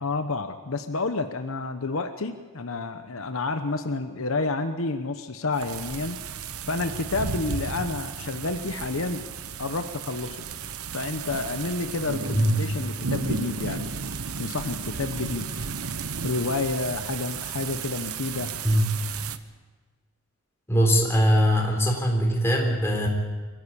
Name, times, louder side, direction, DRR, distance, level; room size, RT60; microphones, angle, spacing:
voice 1, 0.0-6.2 6.7-9.3 9.6-10.4 10.9-13.9 14.4-15.7 16.2-18.5, left 3 dB, 70° left, 8 dB, 1.0 m, -29 dB
sound 1, 5.5-19.4, right 5 dB, 80° right, 1.0 m, -34 dB
voice 2, 20.7-23.1, equal, 10° left, 0 dB, 3.7 m, -21 dB
23.5 x 15.5 x 8.5 m, 1.4 s
head